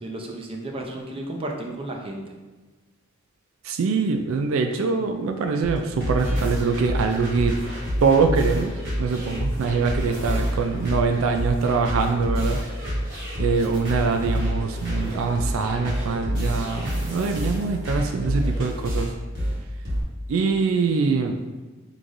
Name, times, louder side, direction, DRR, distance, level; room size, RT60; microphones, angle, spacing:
voice 1, 0.0-2.2, right 1 dB, 25° right, 0 dB, 0.5 m, -33 dB
voice 2, 3.6-7.6 8.0-12.6 13.4-19.1 20.3-21.4, right 4 dB, 75° right, 5 dB, 0.3 m, -23 dB
sound 1, 5.6-20.0, equal, 55° right, 1.5 m, -28 dB
5.7 x 3.2 x 2.5 m, 1.3 s
head